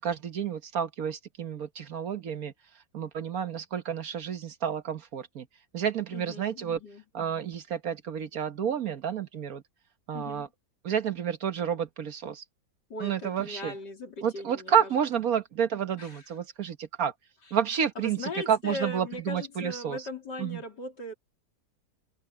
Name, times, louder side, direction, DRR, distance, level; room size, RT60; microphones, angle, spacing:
voice 1, 0.0-2.5 2.9-5.5 5.7-6.8 7.1-9.6 10.1-10.5 10.8-12.4 13.0-13.7 14.2-17.1 17.5-20.0 20.4-20.6, right 8 dB, 60° right, 1.6 m, -30 dB
voice 2, 6.1-7.0 10.1-10.5 12.9-14.9 16.0-16.2 18.0-21.2, left 2 dB, 85° left, 4.2 m, -39 dB
omnidirectional pair, 1.8 m